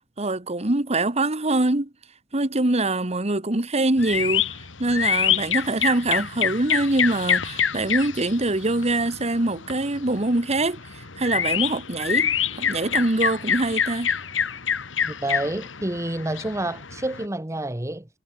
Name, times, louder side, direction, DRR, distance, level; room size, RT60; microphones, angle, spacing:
voice 1, 0.2-1.9 2.3-4.5 4.8-14.1, right 2 dB, 35° right, 1.6 m, -24 dB
sound 1, 4.0-17.2, left 8 dB, 80° left, 2.6 m, -27 dB
voice 2, 15.0-18.1, right 1 dB, 15° right, 1.2 m, -28 dB
head